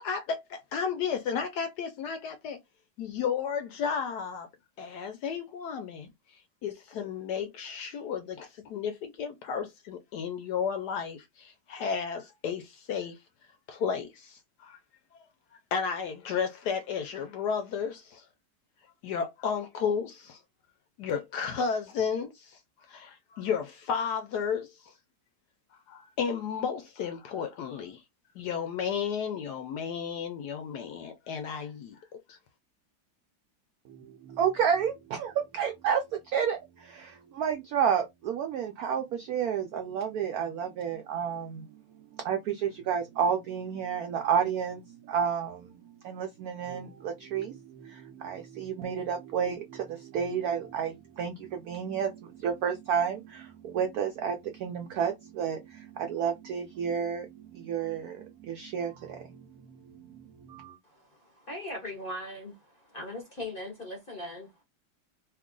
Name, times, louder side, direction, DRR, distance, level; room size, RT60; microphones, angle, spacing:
voice 1, 0.0-2.6 3.0-4.5 4.8-6.1 6.6-13.2 13.7-14.8 15.7-18.2 19.0-20.4 21.0-22.6 22.9-24.9 25.9-28.0 28.4-32.4, left 6 dB, 70° left, 1.0 m, -33 dB
voice 2, 33.9-41.8 42.1-59.4 59.7-60.8, right 7 dB, 80° right, 0.8 m, -31 dB
voice 3, 60.8-64.5, left 1 dB, 45° left, 0.7 m, -40 dB
3.0 x 2.3 x 3.7 m
omnidirectional pair, 2.1 m